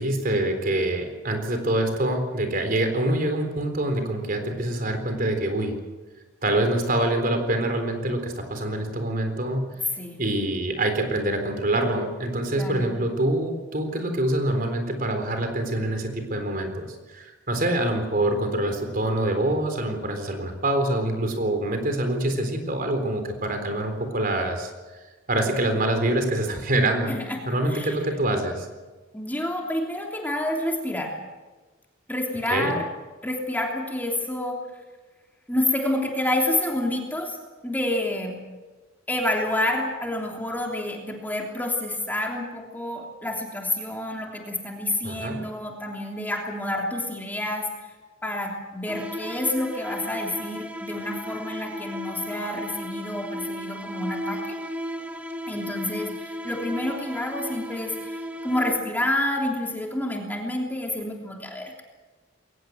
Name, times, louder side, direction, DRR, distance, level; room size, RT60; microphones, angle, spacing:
voice 1, 0.0-5.7 6.4-9.7 10.2-24.7 25.3-27.1 27.5-28.7 32.5-32.7 45.0-45.4, right 1 dB, 45° right, 6 dB, 3.9 m, -25 dB
voice 2, 12.5-12.9 27.1-27.4 27.7-27.9 29.1-31.1 32.1-32.8 33.2-34.6 35.5-37.4 37.6-38.4 39.1-47.7 48.2-54.6 55.5-61.8, left 1 dB, 10° left, 0 dB, 3.1 m, -28 dB
sound 1, 48.9-59.1, equal, 5° right, 1.6 m, -35 dB
22.0 x 19.5 x 7.9 m, 1.2 s
head